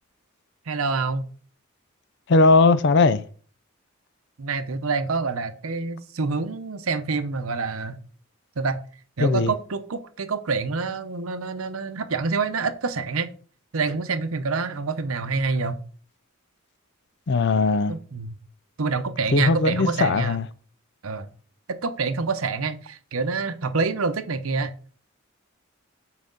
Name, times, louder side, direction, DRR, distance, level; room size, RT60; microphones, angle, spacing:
voice 1, 0.7-1.2 4.4-8.0 8.6-8.8 9.2-13.3 13.7-15.8 17.9-18.4 18.8-20.4 21.0-21.3 21.7-24.7, right 4 dB, 85° right, 0.8 m, -27 dB
voice 2, 2.3-3.3 9.2-9.5 17.3-17.9 19.3-20.5, left 3 dB, 55° left, 0.5 m, -19 dB
7.6 x 4.9 x 3.9 m
head